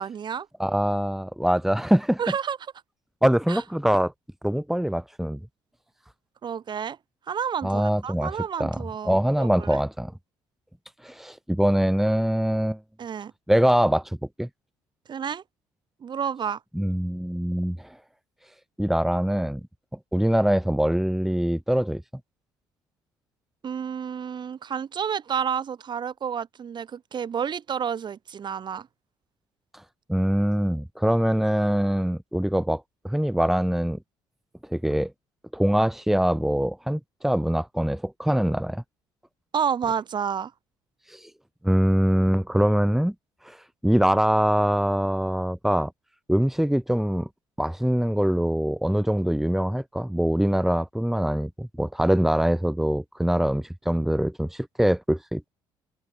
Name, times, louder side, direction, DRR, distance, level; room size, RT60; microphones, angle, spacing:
voice 1, 0.0-0.5 2.2-2.6 3.5-3.6 6.4-7.0 7.3-9.8 13.0-13.3 15.1-15.4 16.0-16.6 23.6-28.9 39.5-40.5, right 7 dB, 50° right, 5.1 m, -30 dB
voice 2, 0.6-2.2 3.2-4.1 4.4-5.4 7.6-8.3 8.6-8.8 9.0-10.1 11.0-12.8 13.5-14.5 16.8-18.0 18.8-19.6 20.1-22.0 30.1-34.0 34.7-35.1 35.5-38.8 41.1-41.3 41.6-43.1 43.4-43.6 43.8-45.9 46.3-47.3 47.6-55.5, equal, 5° right, 2.5 m, -23 dB
supercardioid pair, 70°, 10 cm